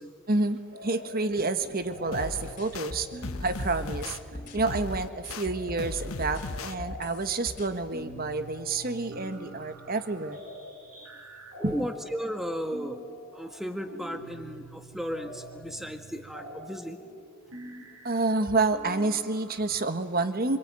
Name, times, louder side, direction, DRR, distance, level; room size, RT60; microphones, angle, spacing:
voice 1, 0.3-3.1 3.4-4.2 4.5-10.4 11.6-11.8 18.0-20.6, right 3 dB, 45° right, 9 dB, 1.4 m, -29 dB
sound 1, 0.7-1.3 1.6-19.9, equal, 90° right, 6.1 m, -46 dB
sound 2, 2.1-2.9 3.2-4.2 4.7-5.5 5.8-6.7, left 2 dB, 85° left, 1.1 m, -36 dB
sound 3, 2.6-5.9 6.2-7.7, left 1 dB, 40° left, 4.0 m, -41 dB
voice 2, 11.6-13.0 13.3-17.2, equal, ahead, 6 dB, 1.7 m, -35 dB
26.0 x 24.0 x 9.1 m, 2.1 s
head